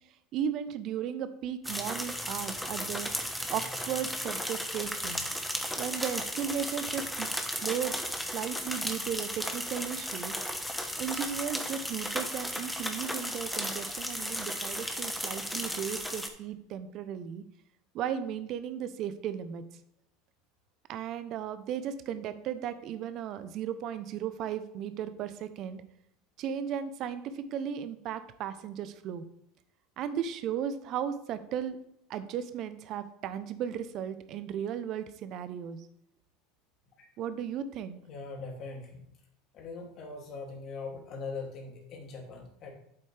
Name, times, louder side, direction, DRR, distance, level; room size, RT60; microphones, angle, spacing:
voice 1, 0.3-5.2 5.8-8.0 8.3-10.3 11.0-17.4 17.9-19.6 20.9-25.8 26.4-29.2 30.0-31.8 32.1-35.9 37.2-38.0, right 9 dB, 55° right, 12 dB, 0.8 m, -35 dB
sound 1, 1.6-16.3, equal, 5° left, 1.3 m, -35 dB
voice 2, 38.1-39.0 39.5-42.7, left 4 dB, 50° left, 1 dB, 2.7 m, -41 dB
8.4 x 8.0 x 3.4 m, 0.74 s
hypercardioid pair, 85°, 0 cm